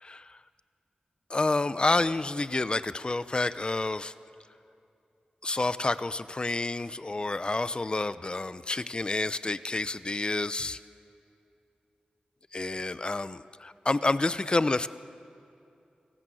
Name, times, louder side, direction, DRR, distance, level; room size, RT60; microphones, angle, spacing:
voice 1, 1.3-4.1 5.4-10.8 12.5-14.9, left 2 dB, 35° left, 15 dB, 0.7 m, -29 dB
28.5 x 18.5 x 7.8 m, 2.7 s
wide cardioid pair, 75°, 3 cm